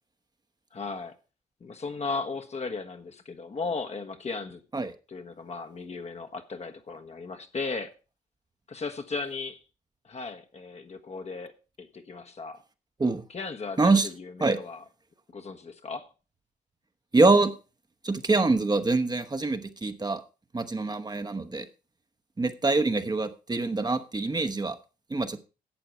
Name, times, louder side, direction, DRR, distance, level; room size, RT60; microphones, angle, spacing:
voice 1, 0.7-1.1 1.6-4.6 5.1-7.9 8.7-9.6 10.0-12.6 13.3-14.8 15.3-16.1, left 4 dB, 45° left, 1.3 m, -36 dB
voice 2, 13.8-14.1 14.4-14.6 17.1-17.5 18.0-20.2 20.5-21.7 22.4-24.8 25.1-25.4, right 3 dB, 25° right, 1.1 m, -24 dB
11.5 x 7.9 x 4.5 m
supercardioid pair, 55°, 16 cm